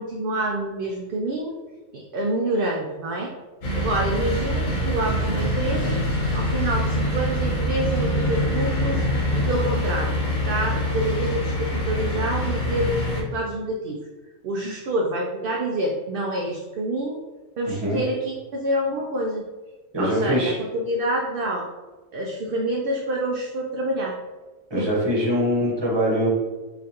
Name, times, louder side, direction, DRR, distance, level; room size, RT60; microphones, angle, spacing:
voice 1, 0.0-1.5 1.9-3.3 3.7-6.0 6.3-9.0 9.3-10.1 10.5-14.0 14.4-17.2 17.6-19.4 20.0-21.7 22.1-24.2 24.8-24.9 25.2-25.3, right 1 dB, 60° right, -1 dB, 0.6 m, -27 dB
sound 1, 3.6-13.2, equal, 90° left, 1.4 m, -24 dB
voice 2, 19.9-20.6 24.7-26.3, equal, 20° right, -4 dB, 1.0 m, -23 dB
5.8 x 2.5 x 2.8 m, 1.2 s
omnidirectional pair, 1.3 m